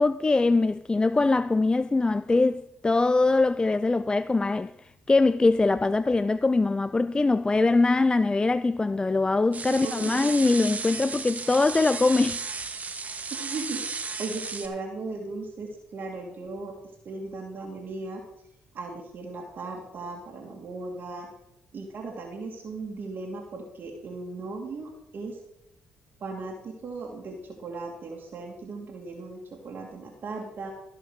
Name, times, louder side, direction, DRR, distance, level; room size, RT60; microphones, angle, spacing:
voice 1, 0.0-12.4, left 3 dB, 20° left, 0.4 m, -23 dB
sound 1, 9.5-14.7, right 4 dB, 35° right, 1.6 m, -34 dB
voice 2, 9.7-10.2 13.3-16.7 17.0-18.2 18.7-21.3 21.7-25.4 26.2-30.7, right 3 dB, 55° right, 2.7 m, -37 dB
15.0 x 5.7 x 6.5 m
supercardioid pair, 60°, 4 cm